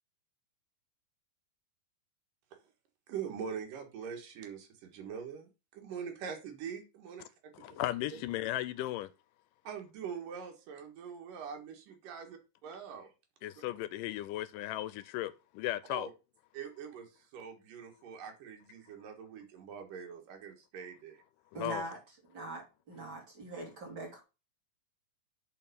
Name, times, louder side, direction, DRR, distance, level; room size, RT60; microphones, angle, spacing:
voice 1, 3.1-7.3 9.6-12.4 12.6-13.1 15.9-16.1 16.5-21.2, right 7 dB, 75° right, 3.1 m, -43 dB
voice 2, 7.5-9.1 13.4-16.1 21.5-21.9, left 14 dB, 80° left, 2.1 m, -36 dB
voice 3, 21.5-22.0 22.3-22.6 22.9-24.2, right 2 dB, 30° right, 3.6 m, -42 dB
7.5 x 4.5 x 6.8 m
omnidirectional pair, 4.1 m